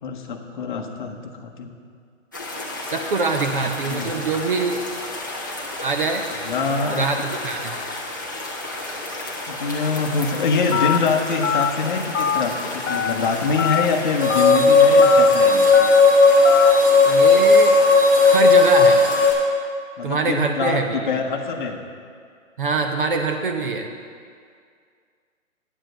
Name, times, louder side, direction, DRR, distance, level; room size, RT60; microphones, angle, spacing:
voice 1, 0.0-1.7 3.9-4.1 6.5-7.1 9.5-15.9 20.0-21.8, left 4 dB, 40° left, 3 dB, 0.8 m, -24 dB
sound 1, 2.3-19.3, left 2 dB, 15° left, 0.4 m, -32 dB
voice 2, 2.8-4.8 5.8-6.2 6.9-7.8 17.1-17.7 18.2-19.0 20.0-21.1 22.6-23.9, right 4 dB, 40° right, 4 dB, 0.6 m, -24 dB
Telephone, 10.7-11.0 11.4-11.7 12.1-12.4 12.9-13.1 13.6-13.9 14.3-14.6 15.0-15.3 15.7-16.0 16.4-16.7, left 8 dB, 70° left, 0.7 m, -22 dB
sound 2, 14.2-19.3, left 3 dB, 25° right, 1.8 m, -14 dB
8.9 x 5.1 x 7.5 m, 2.1 s
hypercardioid pair, 160°, 39 cm